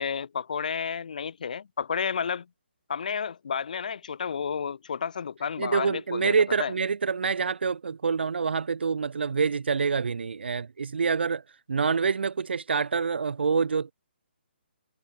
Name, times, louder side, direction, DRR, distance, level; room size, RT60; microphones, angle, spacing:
voice 1, 0.0-2.5 2.9-6.7, left 6 dB, 45° left, 0.4 m, -31 dB
voice 2, 5.6-11.4 11.7-13.9, right 5 dB, 70° right, 0.6 m, -26 dB
hypercardioid pair, 180°, 6 cm